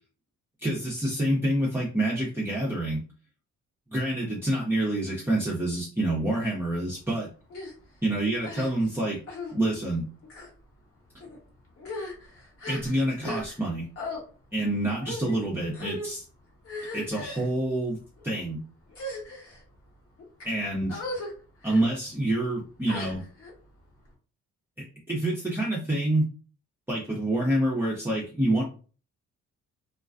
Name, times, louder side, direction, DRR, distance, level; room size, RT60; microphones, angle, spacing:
voice 1, 0.6-3.0 3.9-7.3 8.0-9.2 9.5-10.1 12.7-13.9 14.5-16.2 16.9-18.0 18.2-18.6 20.4-21.0 21.6-23.2 24.8-26.2 26.9-28.6, right 1 dB, 5° right, -4 dB, 0.6 m, -27 dB
sound 1, 7.5-7.7 8.4-8.9 9.3-9.5 10.2-10.5 11.2-11.4 11.8-13.7 14.0-14.2 15.0-15.4 15.7-16.1 16.6-17.5 18.2-18.4 18.9-19.6 20.2-20.5 20.9-21.3 21.6-21.9 22.9-23.5, left 2 dB, 50° left, 1.1 m, -37 dB
2.4 x 2.2 x 2.4 m, 0.37 s
cardioid pair, 90°, 30 cm